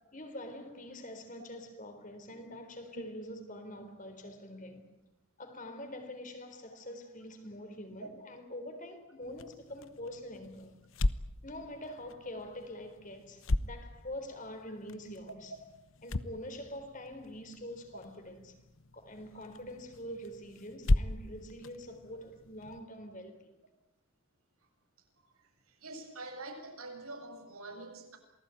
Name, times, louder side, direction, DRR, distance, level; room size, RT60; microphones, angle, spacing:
voice 1, 0.1-4.9 5.4-10.7 11.4-15.6 16.0-18.6 18.9-23.5, left 1 dB, 35° left, 4.0 m, -45 dB
sound 1, 9.2-22.8, left 2 dB, 70° left, 1.0 m, -37 dB
voice 2, 25.8-28.2, right 2 dB, 85° right, 6.8 m, -45 dB
27.5 x 19.5 x 9.3 m
head